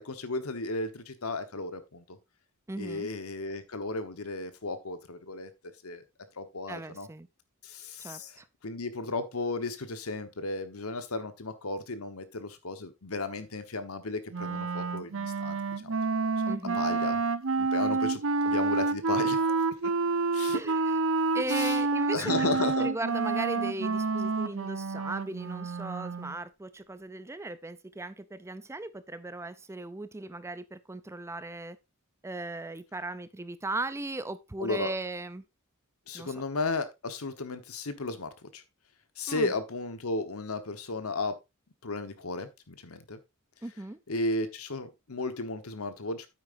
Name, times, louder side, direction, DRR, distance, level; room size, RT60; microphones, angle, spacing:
voice 1, 0.0-2.0 2.8-5.5 5.8-6.0 6.4-7.1 7.6-8.3 8.6-16.0 16.8-17.2 17.6-19.5 19.8-19.9 20.3-20.6 21.5-21.8 22.1-22.9 34.6-34.9 36.1-38.6 39.2-41.4 41.8-43.2 44.1-46.3, left 3 dB, 85° left, 1.2 m, -34 dB
voice 2, 2.7-3.1 6.7-7.3 8.0-8.5 16.5-16.8 20.5-20.9 21.3-31.8 32.2-35.4 36.1-36.3 39.3-39.5 43.6-44.0, right 2 dB, 15° right, 0.4 m, -37 dB
Wind instrument woodwind instrument, 14.3-26.4, right 4 dB, 65° right, 0.7 m, -28 dB
9.0 x 8.9 x 2.6 m
head